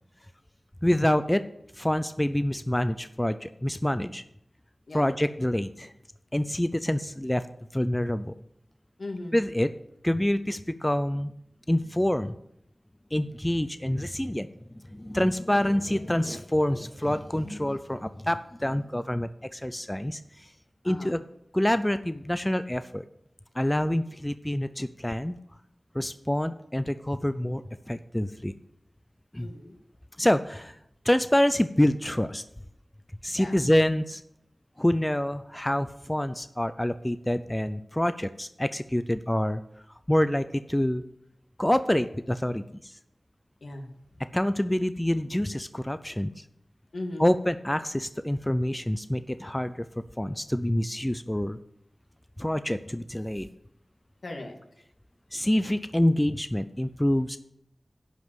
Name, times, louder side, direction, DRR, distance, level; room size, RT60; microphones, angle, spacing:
voice 1, 0.8-1.4 1.8-4.2 4.9-5.9 6.3-7.4 7.7-8.3 9.3-9.7 10.0-11.3 11.7-12.3 13.1-14.5 14.9-20.5 20.8-21.2 21.5-23.1 23.6-25.4 25.9-27.6 27.9-28.5 29.3-29.5 30.2-30.8 31.0-32.4 33.2-34.2 34.8-39.6 40.1-41.0 41.6-42.9 44.3-46.3 47.2-49.9 50.2-51.6 52.4-53.5 55.3-57.4, left 1 dB, 10° left, 11 dB, 0.4 m, -26 dB
voice 2, 9.0-9.4 20.8-21.2 29.4-29.8 33.4-33.6 43.6-43.9 46.9-47.3 54.2-54.6, left 2 dB, 75° left, 2 dB, 2.0 m, -38 dB
11.0 x 5.3 x 7.9 m, 0.75 s
wide cardioid pair, 85°, 0 cm